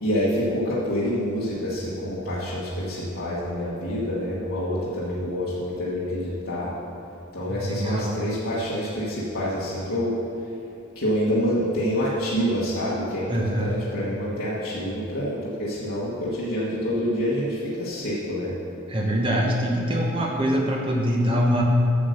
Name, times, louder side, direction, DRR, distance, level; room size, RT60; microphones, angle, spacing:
voice 1, 0.0-6.7 7.3-10.2 10.9-18.6, equal, 75° left, -8 dB, 1.5 m, -27 dB
voice 2, 7.5-8.2 13.3-13.7 18.9-21.6, equal, 25° right, -1 dB, 1.2 m, -24 dB
8.6 x 6.5 x 6.6 m, 3.0 s
head